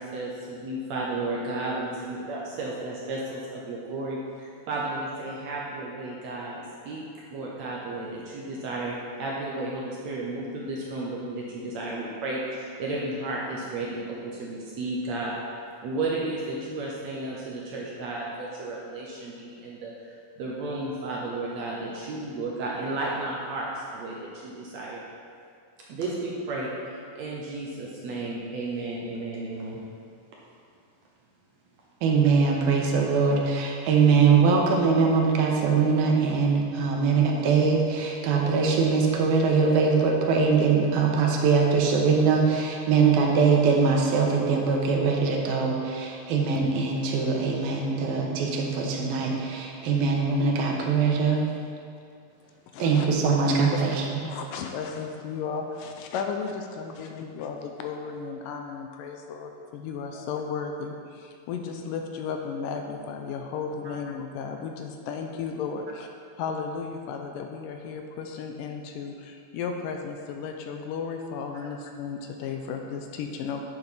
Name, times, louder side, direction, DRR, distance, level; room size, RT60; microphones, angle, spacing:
voice 1, 0.0-7.0 7.3-15.3 15.8-20.1 20.4-25.0 25.9-29.8 63.8-64.0, right 2 dB, 70° right, -4 dB, 1.7 m, -33 dB
voice 2, 32.0-51.5 52.8-54.0, right 5 dB, 85° right, 0 dB, 2.8 m, -22 dB
voice 3, 52.7-53.1 53.6-53.8 54.2-66.1 66.4-73.7, left 5 dB, 80° left, 4 dB, 2.1 m, -34 dB
9.6 x 6.9 x 4.2 m, 2.3 s
omnidirectional pair, 4.1 m